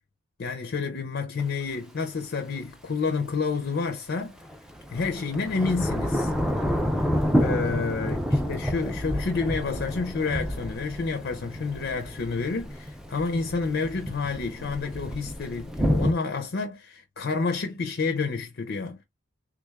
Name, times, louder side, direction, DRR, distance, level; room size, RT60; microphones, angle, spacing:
voice 1, 0.4-4.4 4.9-6.3 7.4-19.0, left 4 dB, 50° left, 0.5 m, -29 dB
Thunder / Rain, 1.4-1.5 4.4-16.1, equal, 5° right, 0.3 m, -29 dB
3.4 x 2.3 x 3.3 m
head